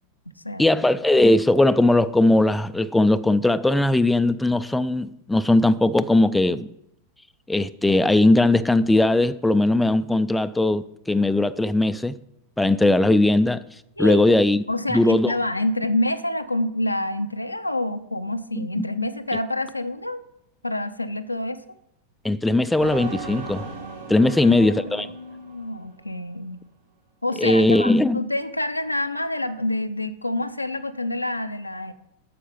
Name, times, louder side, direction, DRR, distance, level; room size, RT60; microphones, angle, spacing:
voice 1, 0.6-6.7 7.5-12.1 12.6-13.6 14.0-14.6 14.9-15.3 18.6-18.8 22.2-23.7 24.1-25.1 27.4-28.2, left 2 dB, 5° left, 0.3 m, -19 dB
voice 2, 14.7-20.2 20.6-21.6 24.2-26.6 27.2-31.9, left 1 dB, 85° left, 0.5 m, -27 dB
sound 1, 22.8-26.2, right 3 dB, 65° right, 1.6 m, -37 dB
9.2 x 6.5 x 5.6 m
figure-of-eight pair, 90°, 0 cm